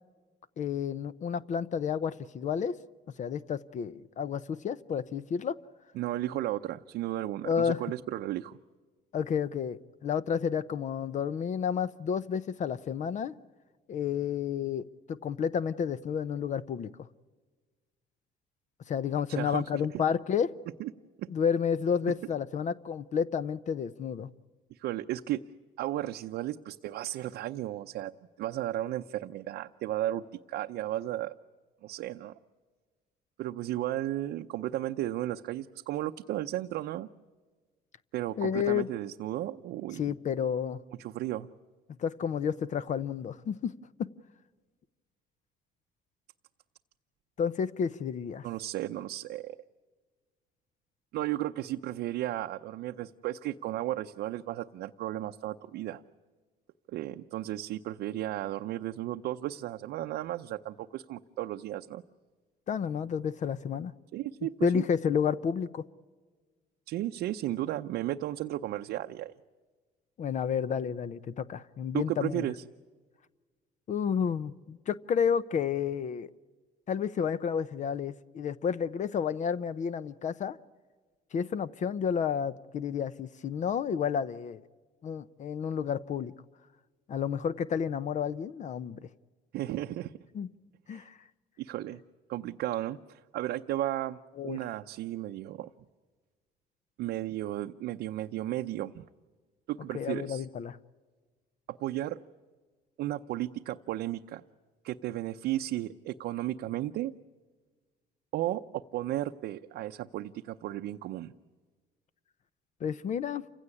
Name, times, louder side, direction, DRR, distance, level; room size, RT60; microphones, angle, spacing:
voice 1, 0.6-2.7 3.2-5.6 7.4-7.8 9.1-13.3 13.9-16.9 18.9-20.5 21.3-24.3 38.4-38.9 40.0-40.8 42.0-43.7 44.0-44.1 47.4-48.4 62.7-63.9 64.6-65.8 70.2-72.4 73.9-76.3 76.9-80.6 81.3-84.6 85.0-86.3 87.1-89.1 90.3-90.5 90.9-91.2 94.4-94.6 99.9-100.8 112.8-113.4, left 7 dB, 45° left, 16 dB, 0.7 m, -31 dB
voice 2, 5.9-8.6 19.3-19.8 20.8-20.9 21.2-21.3 24.7-25.4 25.8-28.1 28.4-31.4 31.8-32.3 33.4-37.1 38.1-40.0 41.0-41.5 48.4-49.6 51.1-56.0 56.9-62.0 64.1-64.8 66.9-69.3 71.9-72.6 89.5-90.1 90.9-91.1 91.6-92.0 92.3-95.7 97.0-99.1 99.7-100.4 101.7-102.2 103.0-104.4 104.8-107.1 108.3-111.3, right 14 dB, 75° right, 5 dB, 0.7 m, -34 dB
28.5 x 16.5 x 9.9 m, 1.4 s
cardioid pair, 110°, 17 cm